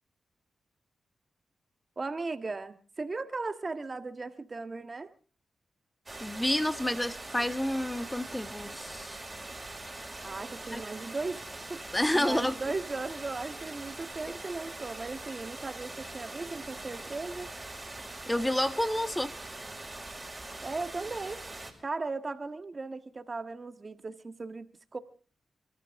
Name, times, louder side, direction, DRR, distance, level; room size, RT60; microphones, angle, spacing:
voice 1, 2.0-5.1 10.2-11.4 11.7-17.5 20.6-21.4 21.8-25.0, right 3 dB, 40° right, 10 dB, 1.6 m, -37 dB
sound 1, 6.1-21.7, right 2 dB, 25° right, 5.6 m, -42 dB
voice 2, 6.2-9.2 10.7-10.8 11.9-12.6 18.3-19.3, left 1 dB, 10° left, 10 dB, 1.7 m, -29 dB
28.5 x 13.5 x 3.7 m, 0.37 s
cardioid pair, 50°, 0 cm